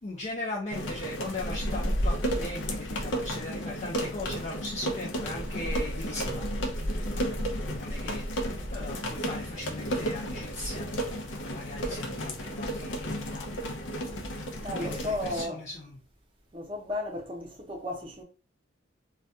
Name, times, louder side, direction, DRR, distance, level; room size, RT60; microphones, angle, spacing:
voice 1, 0.0-6.5 7.1-13.6 14.7-16.0, left 2 dB, 40° left, 0.5 m, -39 dB
sound 1, 0.7-15.5, equal, 90° left, 0.5 m, -32 dB
voice 2, 14.6-15.7 16.5-18.2, left 1 dB, 30° right, 0.7 m, -34 dB
2.2 x 2.2 x 2.6 m
head